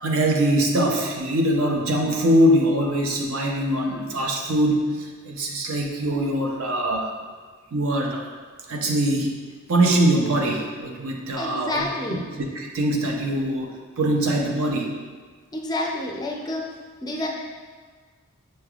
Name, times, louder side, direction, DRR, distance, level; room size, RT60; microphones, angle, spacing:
voice 1, 0.0-7.1 7.7-8.3 8.7-9.4 9.7-12.2 12.5-14.9, right 1 dB, 65° right, 1 dB, 0.6 m, -22 dB
voice 2, 11.4-12.2 15.5-16.6 17.0-17.3, left 1 dB, 20° left, -1 dB, 0.4 m, -28 dB
6.4 x 3.3 x 2.3 m, 1.5 s
head